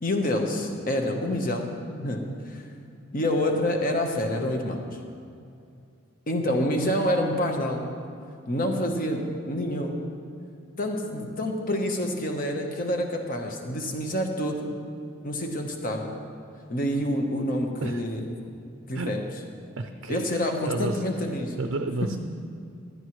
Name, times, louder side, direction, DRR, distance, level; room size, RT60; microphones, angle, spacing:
voice 1, 0.0-2.6 3.1-4.8 6.3-7.9 8.5-10.0 10.8-14.7 15.2-16.2 16.7-18.4 18.9-19.3 20.1-21.5, left 1 dB, 40° left, 3 dB, 1.1 m, -27 dB
voice 2, 19.8-21.0 21.6-22.2, right 2 dB, 60° right, 6 dB, 0.5 m, -31 dB
16.0 x 11.0 x 3.2 m, 2.5 s
head